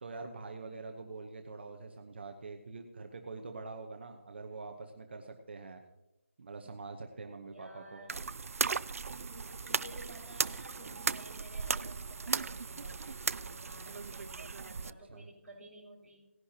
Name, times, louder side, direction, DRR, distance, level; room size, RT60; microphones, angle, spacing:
voice 1, 0.0-5.8 6.4-8.1 14.8-15.3, right 3 dB, 50° right, 4 dB, 1.0 m, -45 dB
voice 2, 0.6-1.0 7.5-8.2 9.3-16.3, right 1 dB, ahead, -14 dB, 4.2 m, -54 dB
sound 1, 8.1-14.9, right 5 dB, 85° right, 0.4 m, -36 dB
18.0 x 11.0 x 2.9 m, 0.97 s
hypercardioid pair, 170°, 8 cm